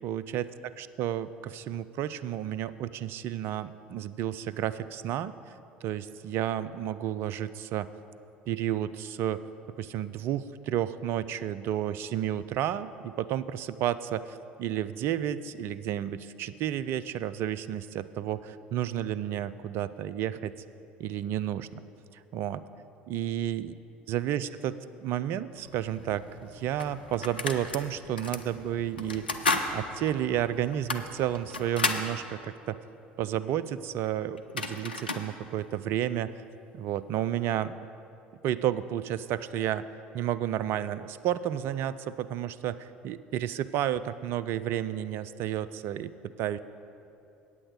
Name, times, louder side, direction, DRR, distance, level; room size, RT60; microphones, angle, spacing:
voice 1, 0.0-0.4 0.8-5.3 5.8-7.9 8.5-9.4 9.8-20.5 21.0-21.8 22.3-22.6 23.1-23.7 24.1-29.3 29.7-32.8 33.2-36.3 36.7-37.8 38.4-39.9 40.1-46.6, right 11 dB, 50° right, 14 dB, 0.4 m, -31 dB
sound 1, 25.5-31.9, left 1 dB, 85° right, 1.3 m, -52 dB
sound 2, 26.0-26.1 26.8-27.8 28.2-28.4 29.0-29.7 30.1-30.2 30.7-32.1 34.1-34.2 34.4-35.3, left 3 dB, 80° left, 0.5 m, -31 dB
8.7 x 8.5 x 6.4 m, 2.7 s
figure-of-eight pair, 60°, 5 cm